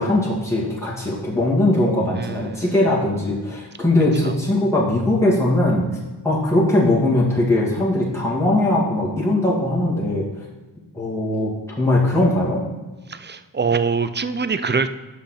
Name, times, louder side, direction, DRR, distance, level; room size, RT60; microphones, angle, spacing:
voice 1, 0.0-5.9 6.2-10.3 10.9-12.6, left 1 dB, 5° left, -6 dB, 2.2 m, -20 dB
voice 2, 2.1-2.7 4.2-4.3 13.1-14.9, right 5 dB, 25° right, 11 dB, 0.5 m, -24 dB
6.2 x 5.7 x 5.8 m, 1.2 s
cardioid pair, 40°, 48 cm